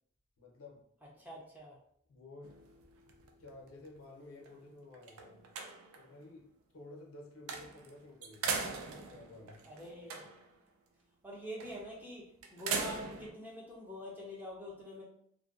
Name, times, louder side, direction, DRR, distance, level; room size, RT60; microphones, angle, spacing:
voice 1, 0.4-0.8 2.1-2.5 3.4-5.4 5.9-8.6 9.1-9.6, left 2 dB, 80° left, 0 dB, 0.6 m, -53 dB
voice 2, 1.2-1.8 9.7-10.3 11.2-12.3 12.5-15.0, equal, 10° right, -4 dB, 0.4 m, -45 dB
sound 1, 2.4-4.0 4.5-4.6 4.9-6.1 7.5-7.9 8.2-10.5 11.6-11.9 12.4-13.3, right 5 dB, 85° right, 0.4 m, -40 dB
2.5 x 2.1 x 2.4 m, 0.67 s
head